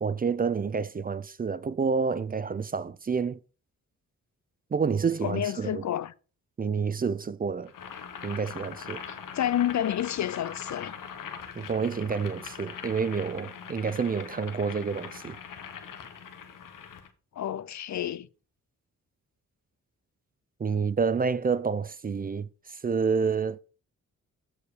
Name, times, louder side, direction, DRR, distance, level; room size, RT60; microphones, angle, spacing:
voice 1, 0.0-3.4 4.7-5.8 6.6-7.7 8.2-9.0 11.6-15.3 20.6-22.5 22.8-23.6, right 5 dB, 30° right, 0.4 m, -28 dB
voice 2, 5.2-6.1 9.1-10.9 17.4-18.3, left 11 dB, 60° left, 0.6 m, -29 dB
Boiling, 7.7-17.1, left 7 dB, 80° left, 1.2 m, -42 dB
8.2 x 4.7 x 5.0 m
cardioid pair, 75°, 32 cm